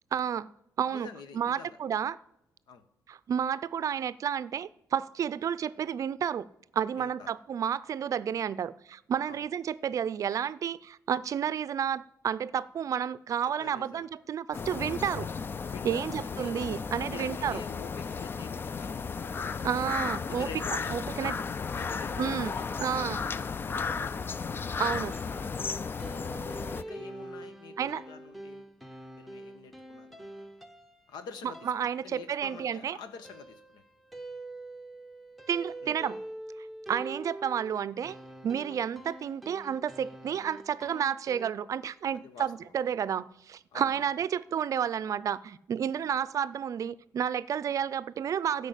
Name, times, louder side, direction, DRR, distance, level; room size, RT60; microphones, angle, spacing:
voice 1, 0.1-0.5 0.8-1.1 1.3-2.2 3.1-6.5 6.7-15.3 15.8-17.6 19.6-20.5 20.9-21.4 22.2-23.2 24.8-25.2 27.8-28.0 31.7-33.0 35.5-36.2 36.9-38.2 38.4-48.7, right 8 dB, 50° right, 17 dB, 0.5 m, -31 dB
voice 2, 0.9-1.8 2.7-2.9 5.3-5.4 7.0-7.3 9.3-9.4 13.6-14.1 15.7-16.6 17.1-19.4 20.3-21.1 21.8-23.3 26.8-28.7 29.2-30.2 31.1-31.7 32.0-33.8 35.8-36.0 38.7-38.8 42.1-42.7 43.7-44.1 45.9-46.1, left 6 dB, 90° left, 10 dB, 1.2 m, -47 dB
sound 1, 14.5-26.8, left 5 dB, 30° left, 0.4 m, -34 dB
sound 2, 25.1-41.5, right 1 dB, ahead, 0.8 m, -45 dB
13.0 x 5.3 x 8.2 m, 0.80 s
cardioid pair, 115°, 7 cm